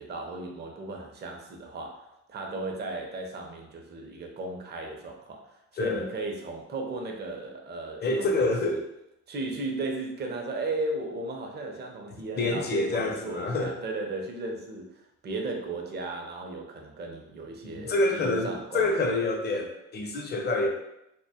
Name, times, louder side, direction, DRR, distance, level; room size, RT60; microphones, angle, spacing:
voice 1, 0.0-5.4 5.7-8.8 9.3-18.9, right 2 dB, 35° right, 1 dB, 0.5 m, -36 dB
voice 2, 5.8-6.1 8.0-8.8 12.4-13.8 17.6-20.7, left 2 dB, 35° left, 2 dB, 0.5 m, -27 dB
2.2 x 2.1 x 2.7 m, 0.85 s
cardioid pair, 90°, 30 cm